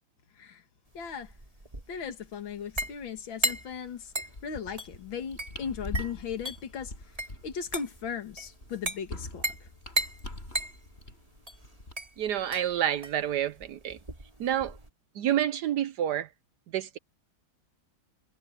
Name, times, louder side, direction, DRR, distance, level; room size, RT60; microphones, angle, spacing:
voice 1, 0.9-1.3 1.9-4.1 4.4-6.9 7.4-9.7, left 7 dB, 70° left, 2.5 m, -37 dB
sound 1, 0.9-14.9, right 1 dB, 15° right, 2.8 m, -37 dB
sound 2, 4.3-11.9, left 1 dB, 30° left, 5.3 m, -43 dB
voice 2, 12.2-14.0 14.4-14.7 15.2-16.3 16.7-17.0, right 10 dB, 65° right, 1.1 m, -28 dB
omnidirectional pair, 2.2 m